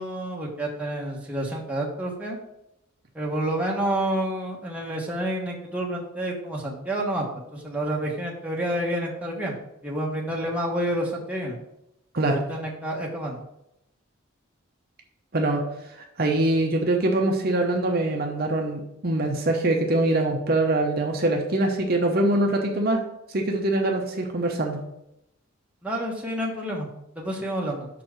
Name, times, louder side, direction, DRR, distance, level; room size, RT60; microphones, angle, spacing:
voice 1, 0.0-2.4 3.1-7.3 7.5-9.5 9.8-11.6 12.5-13.4 25.8-26.9 27.2-27.9, right 1 dB, 5° right, -3 dB, 1.2 m, -29 dB
voice 2, 16.2-23.0 23.3-24.8, right 2 dB, 50° right, 1 dB, 0.8 m, -23 dB
5.9 x 4.5 x 6.4 m, 0.85 s
head